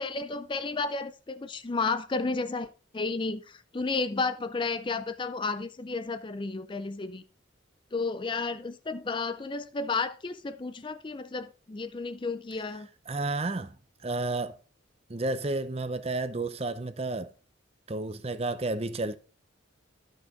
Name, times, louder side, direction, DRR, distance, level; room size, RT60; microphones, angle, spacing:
voice 1, 0.0-7.2 7.9-12.9, left 4 dB, 25° left, 0.4 m, -32 dB
voice 2, 13.1-13.7 14.0-14.6 15.1-17.3 17.9-19.2, right 2 dB, 30° right, 0.6 m, -31 dB
12.0 x 6.3 x 3.6 m
head